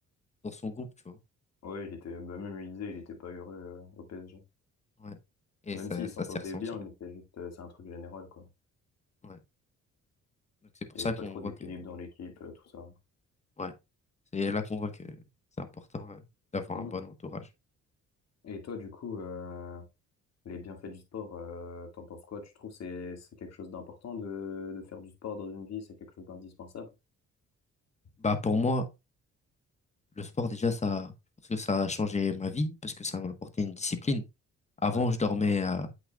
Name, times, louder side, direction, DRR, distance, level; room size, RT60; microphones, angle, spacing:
voice 1, 0.4-1.2 5.0-5.2 5.7-6.1 9.2-9.4 11.0-11.4 13.6-13.7 14.3-15.2 15.6-15.7 15.9-16.2 16.5-17.5 28.2-28.8 30.2-31.1 31.5-34.2 34.8-35.9, left 3 dB, 20° left, 1.2 m, -31 dB
voice 2, 1.6-4.4 5.7-8.5 10.9-12.9 16.7-16.9 18.4-19.8 20.5-25.9 26.2-26.9 34.9-35.1, left 5 dB, 60° left, 2.1 m, -41 dB
8.0 x 6.4 x 2.3 m
cardioid pair, 90°, 30 cm